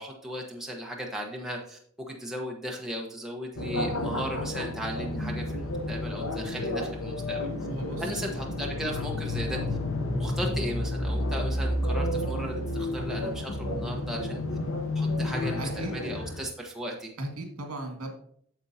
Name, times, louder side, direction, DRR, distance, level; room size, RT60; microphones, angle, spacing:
voice 1, 0.0-1.8 2.1-7.4 8.0-9.6 10.1-14.4 14.9-17.1, equal, ahead, -1 dB, 1.1 m, -36 dB
sound 1, 3.6-16.5, left 1 dB, 65° left, 1.0 m, -31 dB
voice 2, 7.7-8.2 15.6-15.9 17.2-18.1, right 1 dB, 75° right, 3 dB, 2.0 m, -36 dB
9.0 x 7.2 x 2.8 m, 0.63 s
head